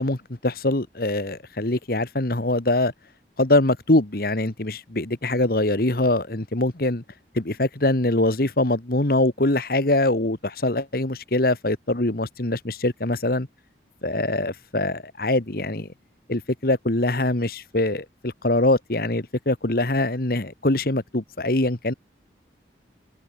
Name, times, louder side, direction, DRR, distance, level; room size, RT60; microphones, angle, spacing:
voice 1, 0.0-2.9 3.4-7.0 7.3-13.5 14.0-15.9 16.3-21.9, left 2 dB, 55° left, 1.7 m, -23 dB
head